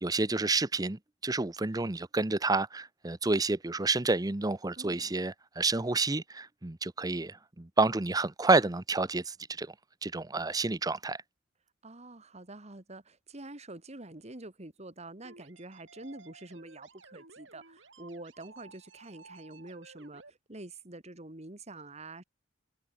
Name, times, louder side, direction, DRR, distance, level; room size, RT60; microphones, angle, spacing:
voice 1, 0.0-9.7 10.0-11.2, right 3 dB, 20° right, 0.7 m, -29 dB
voice 2, 4.8-5.1 11.8-22.2, right 2 dB, 35° right, 2.3 m, -46 dB
sound 1, 15.2-20.3, right 3 dB, 75° right, 6.7 m, -55 dB
head